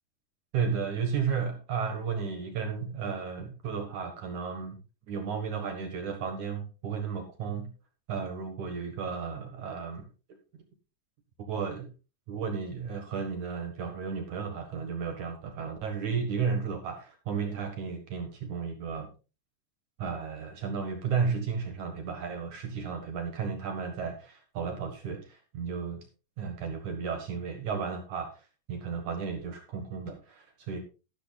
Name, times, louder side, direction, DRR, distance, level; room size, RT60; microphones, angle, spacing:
voice 1, 0.5-4.8 5.1-7.7 8.1-10.6 11.5-11.9 12.3-19.1 20.0-26.0 26.4-30.8, right 6 dB, 55° right, 4 dB, 2.5 m, -33 dB
12.5 x 12.5 x 2.4 m, 0.31 s
omnidirectional pair, 4.9 m